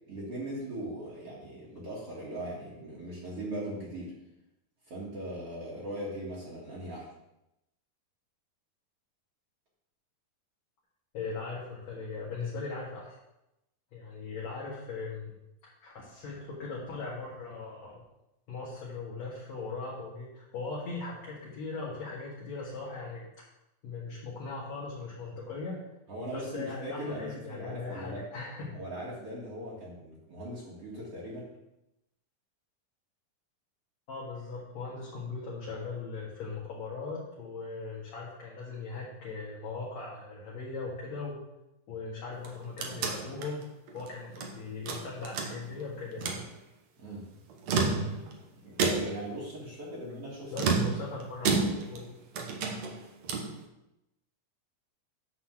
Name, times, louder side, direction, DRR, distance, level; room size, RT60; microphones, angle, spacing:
voice 1, 0.1-4.1 4.9-7.1 26.1-28.2 28.7-31.5 47.0-47.3 48.6-50.5, right 1 dB, 45° right, -6 dB, 2.6 m, -39 dB
voice 2, 11.1-13.2 13.9-15.4 15.8-18.0 18.5-23.3 23.8-25.8 26.3-28.7 34.1-41.4 41.9-43.6 43.9-46.4 50.5-52.2, left 4 dB, 55° left, -6 dB, 2.7 m, -39 dB
sound 1, 42.3-44.5 44.9-45.8 46.1-46.5 47.5-48.3 48.8-49.3 50.5-52.1 52.3-53.6, right 4 dB, 65° right, 1.9 m, -30 dB
9.8 x 4.2 x 7.4 m, 0.89 s
omnidirectional pair, 4.2 m